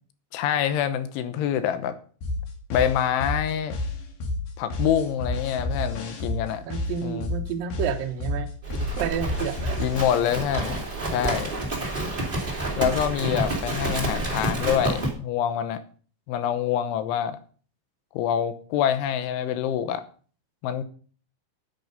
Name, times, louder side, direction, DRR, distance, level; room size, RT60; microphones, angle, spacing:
voice 1, 0.3-2.0 2.7-3.8 4.6-6.7 7.0-7.3 9.8-11.5 12.8-15.8 16.3-17.4 18.1-20.0 20.6-20.8, left 9 dB, 80° left, 11 dB, 3.2 m, -26 dB
sound 1, 2.2-10.2, left 2 dB, 55° left, 3.6 m, -30 dB
voice 2, 6.7-9.8, right 8 dB, 70° right, 5 dB, 2.2 m, -30 dB
Livestock farm animals working animals, 8.6-15.1, right 2 dB, 20° right, 1.3 m, -29 dB
9.9 x 9.5 x 5.3 m, 0.42 s
omnidirectional pair, 5.6 m